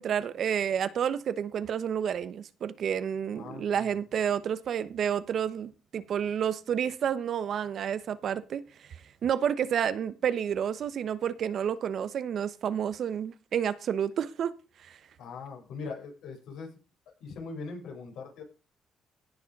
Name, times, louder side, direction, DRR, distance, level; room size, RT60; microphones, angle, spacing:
voice 1, 0.0-8.6 9.2-14.5 14.8-15.0, right 8 dB, 65° right, 1.1 m, -30 dB
voice 2, 3.3-3.9 15.2-16.7 17.2-18.5, left 4 dB, 85° left, 7.5 m, -41 dB
17.0 x 6.8 x 5.4 m
cardioid pair, 90°, 0 cm